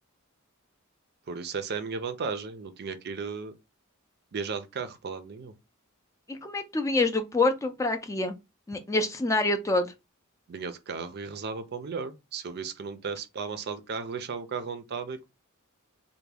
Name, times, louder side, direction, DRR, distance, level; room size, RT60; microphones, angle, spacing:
voice 1, 1.3-3.5 4.3-5.5 10.5-15.3, right 5 dB, 50° right, 0.5 m, -35 dB
voice 2, 6.3-8.3 8.7-9.9, left 2 dB, 15° left, 0.4 m, -26 dB
3.3 x 2.2 x 3.3 m
head